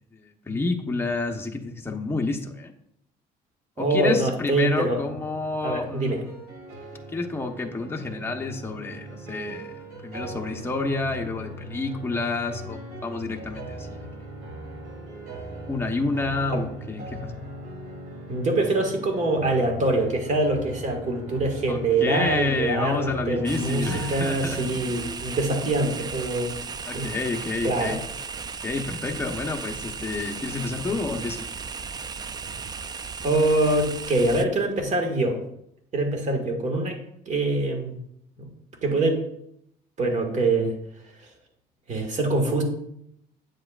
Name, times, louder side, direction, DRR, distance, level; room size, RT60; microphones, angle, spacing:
voice 1, 0.1-2.7 3.8-6.2 7.1-9.8 10.0-14.1 15.7-17.4 21.7-24.7 26.9-28.0 28.6-31.5, left 3 dB, 15° left, 1 dB, 1.0 m, -29 dB
voice 2, 3.8-5.0 5.6-6.2 16.5-16.6 18.3-26.5 26.9-27.1 27.6-28.0 33.2-35.4 35.9-37.0 37.3-38.0 38.4-38.5 38.8-39.3 40.0-40.8 41.9-42.6, right 2 dB, 45° right, 3 dB, 1.9 m, -24 dB
sound 1, 4.8-24.6, right 1 dB, 75° right, 3.1 m, -39 dB
sound 2, 23.5-34.5, right 5 dB, 25° right, 0.4 m, -35 dB
8.9 x 7.6 x 2.5 m, 0.76 s
cardioid pair, 110°, 17 cm